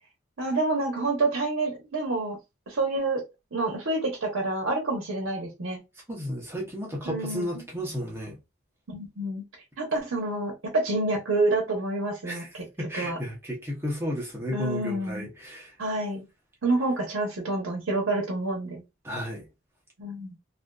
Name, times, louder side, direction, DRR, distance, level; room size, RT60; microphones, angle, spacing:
voice 1, 0.4-2.4 2.7-3.2 3.5-5.8 7.1-7.6 8.9-9.4 9.8-12.6 13.0-13.2 14.5-15.3 15.8-16.2 16.6-18.8 20.0-20.3, right 2 dB, 85° right, 0.8 m, -28 dB
voice 2, 6.1-8.4 12.2-15.7 19.0-19.4, equal, 10° right, 0.7 m, -33 dB
2.5 x 2.5 x 2.2 m
head